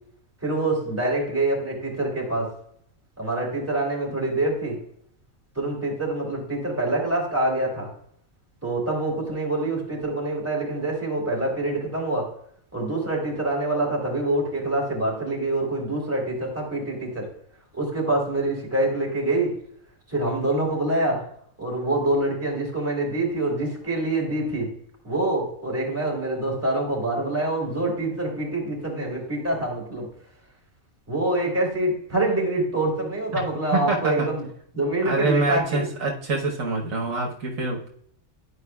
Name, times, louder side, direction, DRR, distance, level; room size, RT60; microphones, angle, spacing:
voice 1, 0.4-2.5 3.2-4.8 5.5-7.9 8.6-12.3 12.7-17.3 17.7-19.5 20.1-21.2 21.6-24.7 25.0-30.1 31.1-34.4 34.7-35.9, right 2 dB, 10° right, -3 dB, 3.0 m, -25 dB
voice 2, 33.7-34.3 35.0-37.9, right 2 dB, 75° right, 0 dB, 1.5 m, -26 dB
11.5 x 4.9 x 2.3 m, 0.66 s
omnidirectional pair, 1.4 m